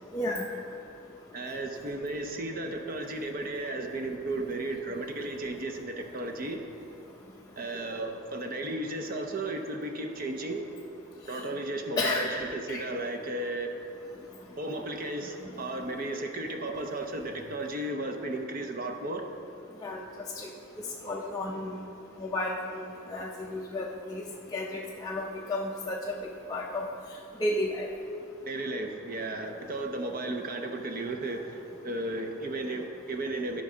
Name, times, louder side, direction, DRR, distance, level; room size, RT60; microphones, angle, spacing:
voice 1, 0.1-0.5 12.0-12.3 12.7-12.8 15.4-15.7 19.8-20.0 20.4-20.5 21.0-21.8 22.2-22.8 23.1-24.2 24.5-26.2 26.5-26.9 27.4-27.9, left 2 dB, 15° left, -3 dB, 0.5 m, -32 dB
voice 2, 1.3-6.6 7.6-10.6 11.3-13.7 14.6-19.2 28.5-31.6 31.8-33.6, right 2 dB, 45° right, 4 dB, 0.6 m, -34 dB
13.5 x 5.2 x 3.8 m, 2.7 s
head